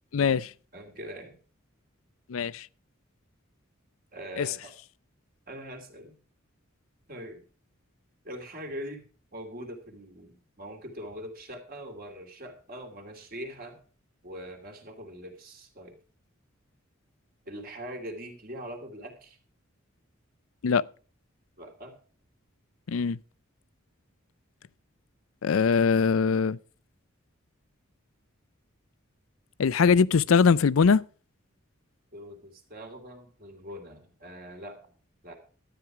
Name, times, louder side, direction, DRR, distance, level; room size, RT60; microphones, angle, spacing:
voice 1, 0.1-0.5 2.3-2.7 4.4-4.5 20.6-20.8 22.9-23.2 25.4-26.6 29.6-31.0, left 5 dB, 85° left, 0.5 m, -22 dB
voice 2, 0.7-1.4 4.1-4.7 5.5-6.2 7.1-7.4 8.2-9.0 9.3-13.8 14.2-16.0 17.5-19.4 21.6-22.0 32.1-34.8 35.2-35.3, equal, 45° right, 2.6 m, -42 dB
12.5 x 9.3 x 4.8 m
head